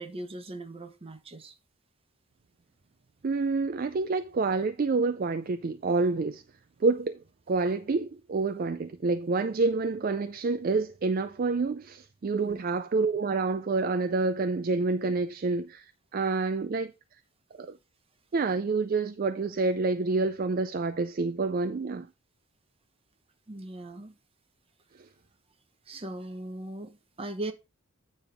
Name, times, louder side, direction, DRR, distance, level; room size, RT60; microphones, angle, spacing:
voice 1, 0.0-1.5 12.4-12.6 23.5-24.2 25.9-27.5, right 1 dB, 25° right, 0.8 m, -39 dB
voice 2, 3.2-6.4 6.8-7.2 7.5-16.9 17.6-17.8 18.3-22.1, right 3 dB, 40° right, 0.4 m, -28 dB
9.0 x 3.4 x 5.8 m
head